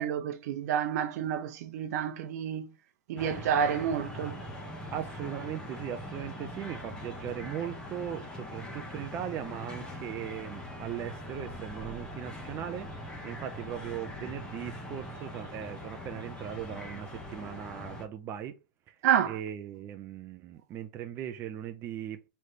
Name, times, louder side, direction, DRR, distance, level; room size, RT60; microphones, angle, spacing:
voice 1, 0.0-2.7 3.1-4.4 19.0-19.4, right 9 dB, 55° right, 0.7 m, -29 dB
sound 1, 3.2-18.0, left 1 dB, 10° left, 0.8 m, -42 dB
voice 2, 4.9-18.6 18.9-19.0 19.3-22.3, right 10 dB, 25° right, 0.5 m, -39 dB
4.2 x 3.3 x 3.0 m
supercardioid pair, 155°, 10 cm